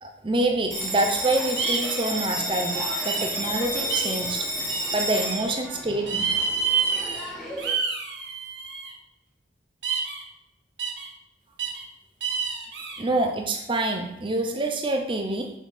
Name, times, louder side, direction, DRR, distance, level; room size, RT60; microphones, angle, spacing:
voice 1, 0.0-4.5 4.9-6.3 13.0-15.5, right 2 dB, 30° right, 3 dB, 0.6 m, -26 dB
Bell, 0.7-7.7, equal, ahead, 1.6 m, -31 dB
sound 1, 1.6-2.1 3.1-3.5 3.9-4.2 4.7-5.4 6.1-7.3 7.6-8.9 9.8-10.2 10.8-11.1 11.6-11.8 12.2-13.0, right 5 dB, 70° right, 1.2 m, -28 dB
6.4 x 4.2 x 5.1 m, 0.84 s
head